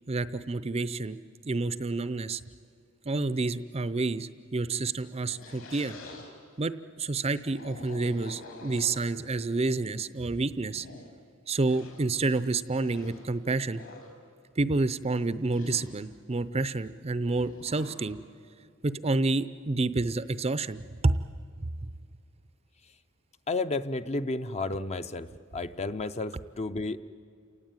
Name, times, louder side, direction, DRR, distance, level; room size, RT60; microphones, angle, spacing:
voice 1, 0.1-1.2 1.4-2.4 3.0-6.0 6.6-10.9 11.5-13.8 14.6-18.2 18.8-21.2 21.6-21.7, right 3 dB, 30° right, 14 dB, 0.6 m, -29 dB
sound 1, 5.1-6.3 7.3-9.3 10.0-10.1 10.6-11.1 11.6-12.1 12.8-13.3 13.6-14.1 15.5-15.9 17.3-18.0, left 2 dB, 70° left, 5.2 m, -47 dB
voice 2, 23.5-25.3 25.5-27.0, left 3 dB, 30° left, 10 dB, 0.6 m, -32 dB
30.0 x 18.5 x 9.0 m, 2.2 s
head